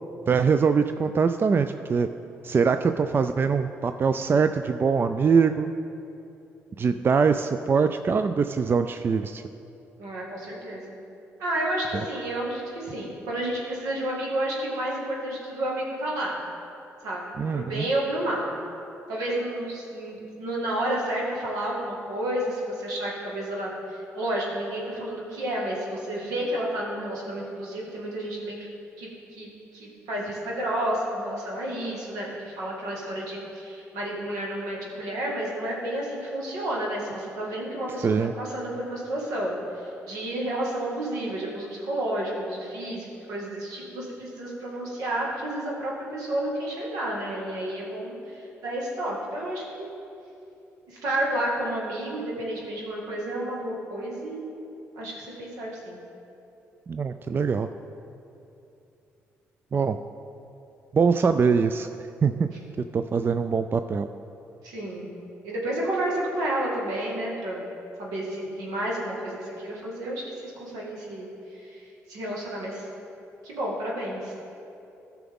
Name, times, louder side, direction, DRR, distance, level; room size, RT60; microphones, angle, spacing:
voice 1, 0.3-2.1 2.4-5.7 6.8-9.4 17.4-17.9 38.0-38.3 56.9-57.7 59.7-60.0 60.9-61.9 62.2-62.5 62.9-64.1, right 5 dB, 40° right, 9 dB, 0.3 m, -23 dB
voice 2, 10.0-10.9 11.4-16.4 17.0-18.5 19.1-28.7 29.0-49.9 50.9-54.5 55.0-56.0 64.6-65.1 65.4-67.7 68.0-72.9 73.4-74.3, right 1 dB, 80° right, -3 dB, 2.0 m, -31 dB
14.0 x 5.9 x 3.7 m, 2.8 s
supercardioid pair, 60°, 6 cm